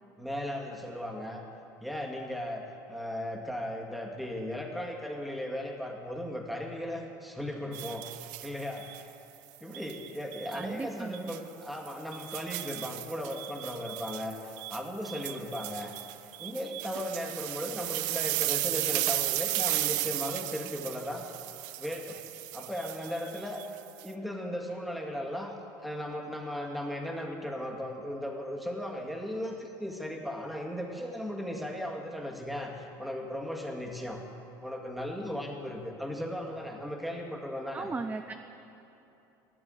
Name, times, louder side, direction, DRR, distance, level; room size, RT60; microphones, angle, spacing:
voice 1, 0.2-1.4 1.8-2.6 2.9-8.1 8.4-8.9 9.6-15.9 16.4-21.2 21.8-22.2 22.5-23.6 24.0-34.2 34.6-37.9, equal, ahead, 1 dB, 2.0 m, -36 dB
sound 1, 7.7-9.0 9.7-10.7 11.1-11.4 11.9-24.1, right 17 dB, 80° right, 0.5 m, -35 dB
voice 2, 10.5-11.4 37.7-38.3, right 4 dB, 15° right, 7 dB, 0.5 m, -36 dB
12.5 x 8.7 x 7.9 m, 3.0 s
supercardioid pair, 85°, 10 cm